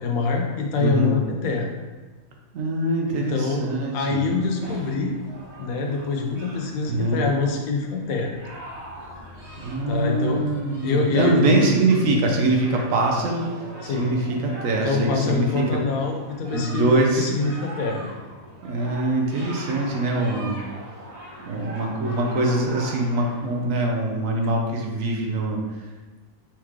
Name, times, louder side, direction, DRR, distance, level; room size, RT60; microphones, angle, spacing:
voice 1, 0.0-1.7 3.1-3.7 3.9-5.1 5.6-8.3 9.9-10.5 10.8-12.2 13.8-14.1 14.8-16.9 17.2-18.1, left 4 dB, 75° left, 1 dB, 1.1 m, -25 dB
voice 2, 0.8-1.1 2.5-4.2 6.9-7.2 9.6-13.5 13.8-15.8 16.5-17.3 18.6-20.6 21.5-25.6, right 2 dB, 70° right, 1 dB, 1.0 m, -23 dB
sound 1, 4.2-23.7, right 1 dB, 55° right, 1.3 m, -41 dB
4.4 x 3.1 x 3.6 m, 1.2 s
omnidirectional pair, 1.5 m